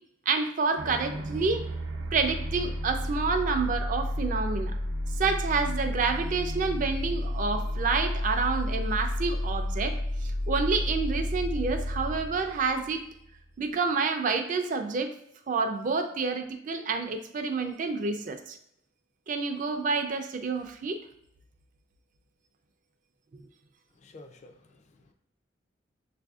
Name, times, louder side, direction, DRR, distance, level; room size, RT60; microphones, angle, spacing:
voice 1, 0.3-1.7 2.1-4.8 5.2-13.1 13.6-15.1 15.5-18.6 19.3-21.0, right 4 dB, 40° right, 7 dB, 0.4 m, -28 dB
sound 1, 0.8-13.5, left 1 dB, 85° right, 0.6 m, -31 dB
voice 2, 23.9-25.1, left 2 dB, 35° left, 5 dB, 0.3 m, -52 dB
6.7 x 2.5 x 2.3 m, 0.75 s
head